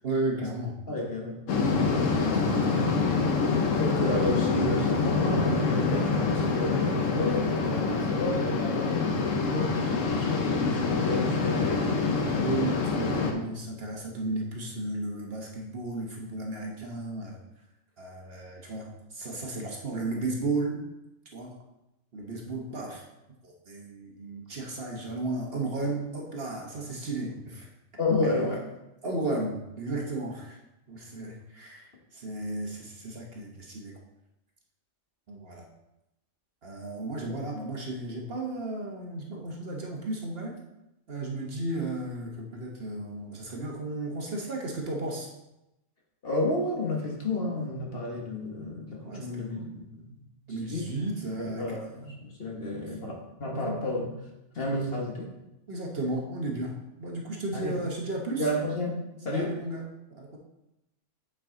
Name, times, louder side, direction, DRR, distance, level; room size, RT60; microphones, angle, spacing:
voice 1, 0.0-0.8 2.3-3.0 12.3-17.4 18.0-20.8 21.3-21.6 22.1-23.0 23.4-27.7 29.0-30.6 30.9-33.9 35.3-35.7 36.6-40.6 41.1-45.3 49.0-49.7 50.5-52.0 52.7-53.1 53.5-53.8 55.7-58.5 59.3-60.4, right 2 dB, 50° right, 0 dB, 1.3 m, -34 dB
voice 2, 0.9-1.4 3.5-12.2 28.0-28.6 46.2-50.1 50.5-50.9 51.4-54.1 54.5-55.3 57.5-57.8 58.3-59.6, left 2 dB, 50° left, -1 dB, 1.5 m, -31 dB
sound 1, 1.5-13.3, left 4 dB, 85° left, 1.3 m, -26 dB
8.6 x 4.7 x 3.8 m, 0.91 s
omnidirectional pair, 1.3 m